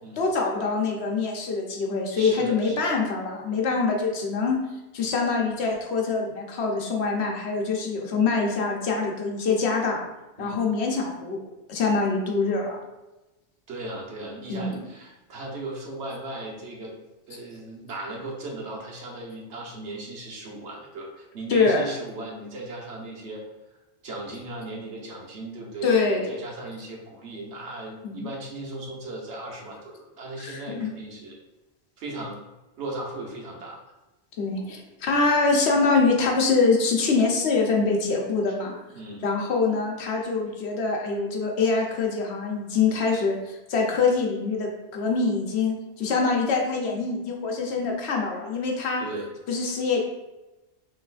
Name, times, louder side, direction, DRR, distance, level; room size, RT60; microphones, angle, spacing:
voice 1, 0.2-4.6 4.9-10.0 10.4-11.4 11.7-12.8 14.5-14.8 21.5-21.9 25.8-26.3 28.0-28.3 30.4-30.9 34.4-38.7 39.2-49.0 49.5-50.0, left 4 dB, 75° left, 0 dB, 1.0 m, -24 dB
voice 2, 2.1-2.9 10.4-10.6 13.7-16.9 17.3-23.4 24.0-31.4 32.0-32.4 32.8-33.8 38.9-39.2 49.0-49.3, right 2 dB, 90° right, -1 dB, 1.2 m, -37 dB
5.8 x 3.1 x 2.4 m, 1.0 s
omnidirectional pair, 1.1 m